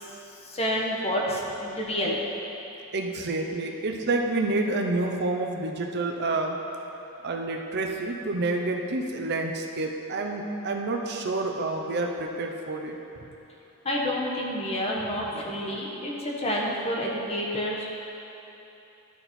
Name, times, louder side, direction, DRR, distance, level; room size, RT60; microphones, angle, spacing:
voice 1, 0.4-2.2 13.8-17.8, equal, 30° left, -3 dB, 1.1 m, -29 dB
voice 2, 2.9-6.6 7.2-13.3, right 2 dB, 50° right, 2 dB, 0.7 m, -28 dB
12.0 x 4.3 x 4.3 m, 3.0 s
head